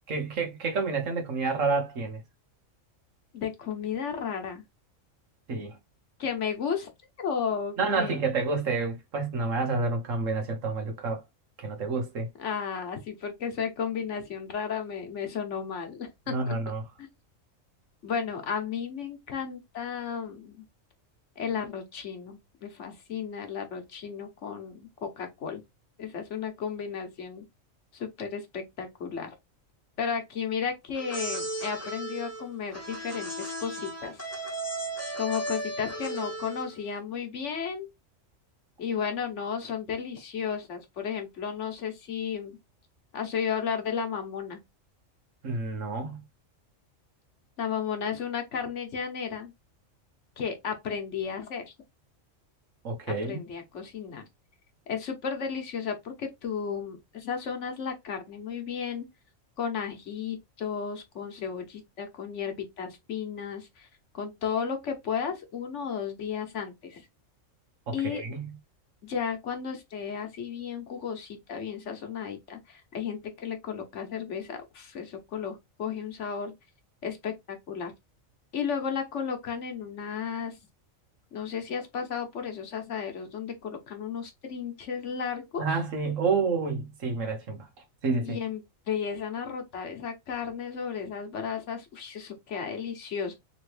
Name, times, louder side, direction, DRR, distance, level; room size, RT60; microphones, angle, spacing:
voice 1, 0.1-2.2 5.5-5.8 7.8-11.2 11.6-12.3 16.3-16.8 45.4-46.2 52.8-53.4 67.9-68.5 85.6-87.7 88.0-88.4, right 4 dB, 75° right, 1.5 m, -29 dB
voice 2, 3.3-4.6 6.2-6.9 7.2-8.3 12.4-16.5 17.0-17.1 18.0-20.6 21.4-25.6 26.0-27.4 27.9-29.3 30.0-34.3 35.2-37.9 38.8-42.6 43.1-44.6 47.6-49.5 50.4-51.7 53.1-54.2 54.9-59.1 59.6-63.9 64.1-67.0 67.9-68.2 69.0-76.5 77.0-77.9 78.5-80.6 81.3-85.6 88.2-93.3, left 7 dB, 65° left, 1.4 m, -34 dB
sound 1, 30.9-36.8, right 1 dB, 15° left, 1.0 m, -35 dB
3.7 x 3.1 x 3.2 m
omnidirectional pair, 1.4 m